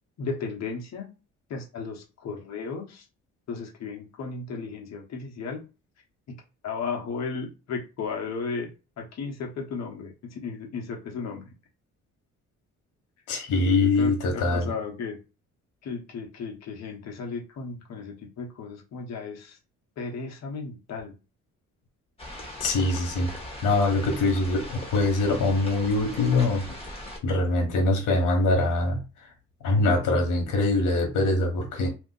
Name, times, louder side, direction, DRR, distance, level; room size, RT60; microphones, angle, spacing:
voice 1, 0.2-1.2 1.5-3.1 3.5-5.6 6.3-8.7 9.0-11.5 13.5-15.2 15.8-19.6 20.0-21.2, left 4 dB, 60° left, 1.1 m, -35 dB
voice 2, 13.3-14.7 22.6-23.3 23.6-26.8 27.2-29.0 29.6-31.9, left 2 dB, 85° left, 1.2 m, -23 dB
sound 1, 22.2-27.2, left 1 dB, 20° left, 1.3 m, -39 dB
2.6 x 2.4 x 3.9 m
cardioid pair, 90°, 30 cm